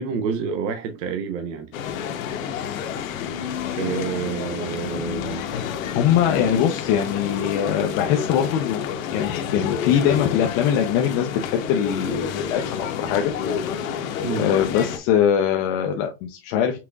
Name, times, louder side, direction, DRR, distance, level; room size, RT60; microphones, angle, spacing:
voice 1, 0.0-1.7 3.7-5.4 14.2-14.5, right 6 dB, 60° right, 0.9 m, -28 dB
sound 1, 1.7-15.0, left 8 dB, 75° left, 1.0 m, -29 dB
voice 2, 5.9-8.9 9.1-13.3 13.8-14.1 14.4-16.8, left 9 dB, 35° left, 0.5 m, -22 dB
5.8 x 3.7 x 2.3 m
supercardioid pair, 150°, 41 cm